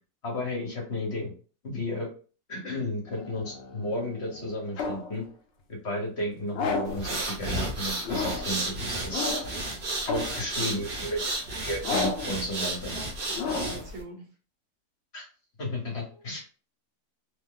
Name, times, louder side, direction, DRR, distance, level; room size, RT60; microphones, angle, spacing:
voice 1, 0.2-1.3 1.6-2.1 2.5-5.2 5.7-9.3 10.1-11.2 11.6-12.9 15.1-15.3 15.6-16.4, left 1 dB, 45° left, -1 dB, 1.2 m, -33 dB
sound 1, 3.1-5.1 6.5-7.1 8.0-8.6 9.1-9.6 10.0-10.5 11.8-12.4 13.3-13.9, left 4 dB, 70° left, 0.6 m, -32 dB
sound 2, 6.9-14.0, right 2 dB, 50° right, 1.0 m, -32 dB
voice 2, 12.9-14.3 15.8-16.3, right 2 dB, 75° right, 0 dB, 1.5 m, -46 dB
3.2 x 2.0 x 3.7 m, 0.37 s
omnidirectional pair, 1.7 m